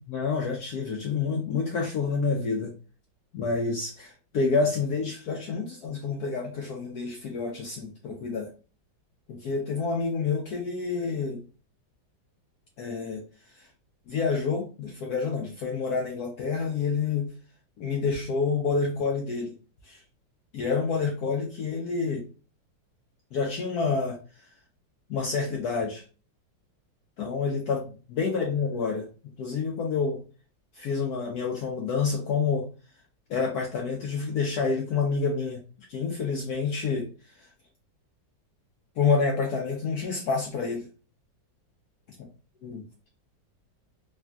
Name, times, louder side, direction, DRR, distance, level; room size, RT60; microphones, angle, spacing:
voice 1, 0.0-2.7 3.3-8.5 9.3-11.4 12.8-13.2 13.6-13.7 14.1-17.3 17.8-19.5 19.8-20.0 20.5-22.3 23.3-24.2 25.1-26.0 27.2-29.1 29.4-30.2 30.7-32.7 33.3-35.6 35.9-37.1 39.0-40.8 42.6-42.8, left 4 dB, 70° left, 0 dB, 0.9 m, -28 dB
3.3 x 2.5 x 2.2 m, 0.35 s
omnidirectional pair, 2.0 m